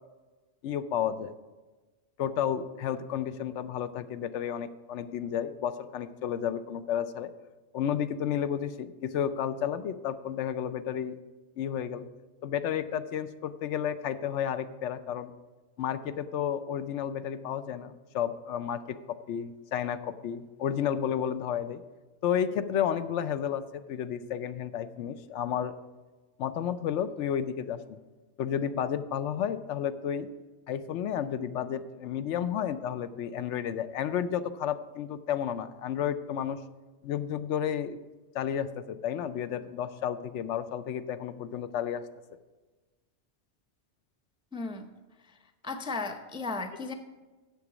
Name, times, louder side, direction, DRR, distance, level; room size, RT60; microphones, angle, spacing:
voice 1, 0.6-1.3 2.2-7.3 7.7-11.2 11.6-12.0 12.4-15.3 15.8-19.0 19.3-21.8 22.2-25.8 26.4-28.0 28.4-30.3 30.7-36.6 37.0-38.0 38.3-42.1, left 9 dB, 80° left, 12 dB, 0.9 m, -32 dB
voice 2, 44.5-44.9 45.6-46.9, left 3 dB, 10° right, 7 dB, 0.3 m, -35 dB
8.1 x 7.2 x 6.0 m, 1.2 s
omnidirectional pair, 1.2 m